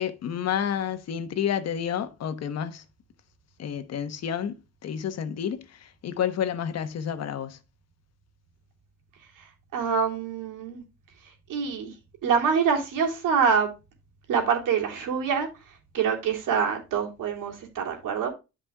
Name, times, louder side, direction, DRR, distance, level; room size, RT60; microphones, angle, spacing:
voice 1, 0.0-2.8 3.6-7.6, left 8 dB, 55° left, 1.2 m, -30 dB
voice 2, 9.7-10.8 11.5-11.9 12.2-13.7 14.3-15.5 15.9-18.3, right 6 dB, 85° right, 3.2 m, -25 dB
13.0 x 5.4 x 2.3 m
cardioid pair, 160°, 31 cm